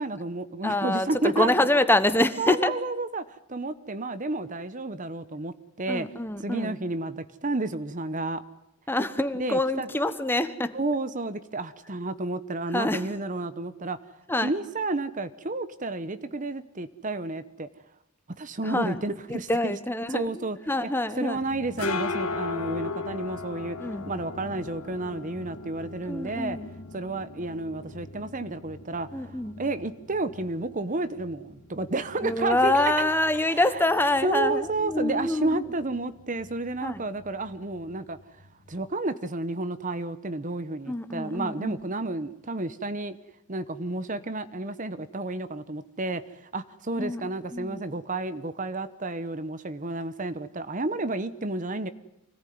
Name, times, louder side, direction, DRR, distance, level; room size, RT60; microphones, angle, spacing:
voice 1, 0.0-1.5 2.4-6.1 6.4-8.4 9.4-9.9 10.7-14.0 14.4-17.7 18.4-19.8 20.1-20.9 21.2-23.8 24.1-26.6 26.9-33.0 33.4-33.8 34.2-38.2 38.7-43.2 43.5-51.9, right 2 dB, 35° right, 1.0 m, -31 dB
voice 2, 0.6-2.7 5.9-6.8 8.9-10.7 12.7-13.0 14.3-14.5 18.6-19.0 19.3-21.4 23.8-24.0 26.1-26.7 29.1-29.6 32.2-35.6 36.8-37.0 40.9-41.8 47.0-47.2 47.5-47.8, left 1 dB, 10° left, 1.1 m, -26 dB
sound 1, 21.4-38.8, left 4 dB, 80° left, 2.1 m, -39 dB
25.0 x 18.0 x 9.5 m
head